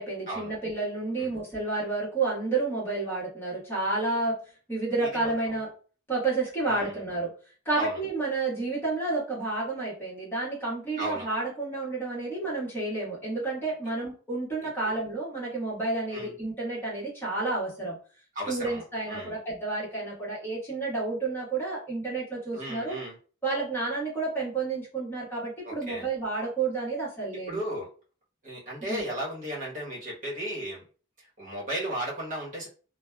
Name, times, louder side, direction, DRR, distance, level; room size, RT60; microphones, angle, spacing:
voice 1, 0.0-4.4 4.7-5.7 6.1-7.3 7.6-18.0 18.4-23.0 23.4-27.6 28.9-29.0, right 3 dB, 10° left, -7 dB, 1.3 m, -30 dB
voice 2, 5.0-5.6 6.6-7.0 7.8-8.0 11.0-11.3 16.1-16.3 18.3-19.4 22.5-23.2 25.6-26.1 27.5-27.9 28.4-30.8 31.4-32.7, right 1 dB, 40° right, -5 dB, 1.1 m, -35 dB
3.1 x 2.2 x 2.2 m, 0.39 s
head